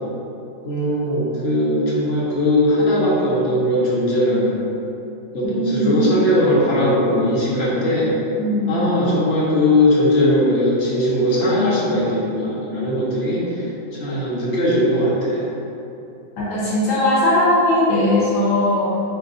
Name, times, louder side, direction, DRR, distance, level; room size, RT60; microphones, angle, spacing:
voice 1, 0.6-4.6 5.3-8.1 8.7-15.5, left 1 dB, 60° left, -6 dB, 0.6 m, -19 dB
voice 2, 5.4-5.9 8.4-8.7 16.4-19.0, left 1 dB, 85° left, -8 dB, 1.8 m, -19 dB
4.1 x 3.9 x 2.6 m, 2.8 s
omnidirectional pair, 2.1 m